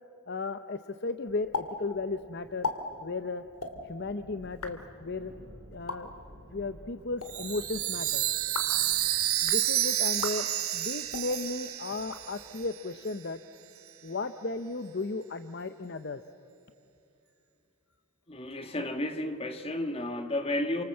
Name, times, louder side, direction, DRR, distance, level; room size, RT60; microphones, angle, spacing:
voice 1, 0.3-2.7 3.0-3.4 3.8-5.3 5.7-6.1 6.5-8.2 9.4-13.4 14.0-16.2, left 3 dB, 50° left, 10 dB, 0.7 m, -35 dB
sound 1, 1.2-9.6, equal, 50° right, 5.3 m, -53 dB
sound 2, 1.5-1.7 1.9-2.0 2.5-2.8 3.5-3.7 4.4-4.7 5.7-6.0 7.0-7.3 8.4-8.8 9.3-9.6 10.1-10.4 11.0-11.3 12.0-12.7, left 4 dB, 80° left, 2.5 m, -37 dB
Chime, 7.3-12.8, right 13 dB, 75° right, 1.4 m, -30 dB
voice 2, 18.3-20.8, left 1 dB, 25° left, 7 dB, 1.8 m, -32 dB
29.5 x 26.0 x 7.6 m, 2.6 s
head